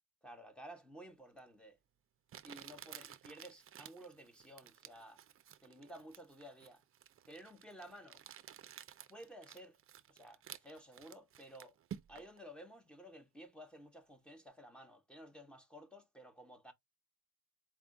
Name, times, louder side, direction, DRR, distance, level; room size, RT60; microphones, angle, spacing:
voice 1, 0.2-1.8 2.4-5.2 5.6-6.8 7.3-8.2 9.1-9.8 10.1-11.8 12.1-16.7, equal, 5° left, 0.6 m, -54 dB
Crumpling crinkling, 1.4-1.5 2.3-12.4, right 10 dB, 45° right, 0.4 m, -54 dB
4.4 x 2.3 x 3.5 m
wide cardioid pair, 175°, 30 cm